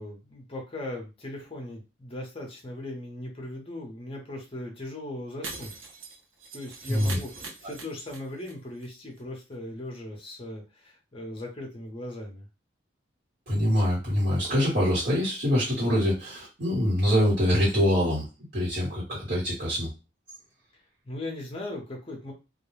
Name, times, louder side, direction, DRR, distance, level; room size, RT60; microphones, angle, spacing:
voice 1, 0.0-5.7 6.5-12.5 21.0-22.3, left 1 dB, 30° left, 1 dB, 0.7 m, -38 dB
Shatter, 5.4-8.5 8.8-8.9 9.2-9.3, right 3 dB, 85° right, 0.7 m, -41 dB
voice 2, 13.5-18.3 18.5-19.9, equal, 50° right, -7 dB, 1.2 m, -24 dB
2.3 x 2.1 x 3.0 m, 0.28 s
head